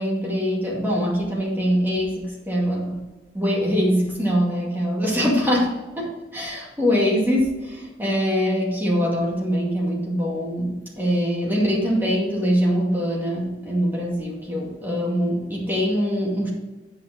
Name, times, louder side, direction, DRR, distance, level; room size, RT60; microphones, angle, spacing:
voice 1, 0.0-3.0 3.3-16.5, equal, 10° right, -4 dB, 2.3 m, -23 dB
9.8 x 5.7 x 5.1 m, 1.1 s
head